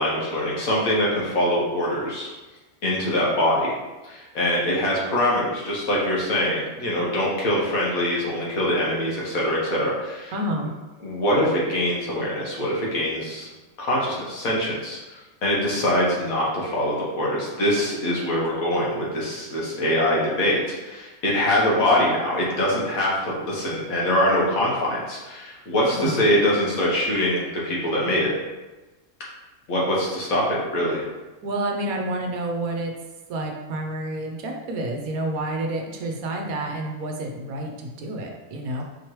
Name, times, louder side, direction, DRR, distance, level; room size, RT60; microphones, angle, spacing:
voice 1, 0.0-2.3 2.8-3.7 4.0-10.3 11.0-13.5 13.8-15.0 15.4-28.3 29.7-31.1, left 1 dB, 75° left, -5 dB, 1.5 m, -23 dB
voice 2, 10.3-10.7 25.9-26.2 31.4-32.9 33.3-38.8, right 1 dB, 80° right, 2 dB, 1.1 m, -29 dB
4.9 x 3.0 x 3.1 m, 1.1 s
omnidirectional pair, 1.5 m